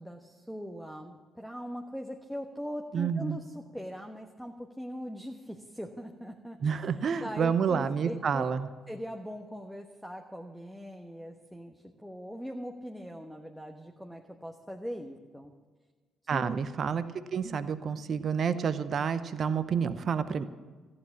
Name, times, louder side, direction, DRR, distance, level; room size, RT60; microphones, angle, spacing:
voice 1, 0.0-6.9 7.2-8.4 8.9-15.5 16.3-16.6, equal, ahead, 2 dB, 1.2 m, -41 dB
voice 2, 2.9-3.4 6.6-8.7 16.3-17.0 17.3-20.5, right 6 dB, 45° right, 13 dB, 0.7 m, -29 dB
14.5 x 9.7 x 7.3 m, 1.4 s
figure-of-eight pair, 45°, 0 cm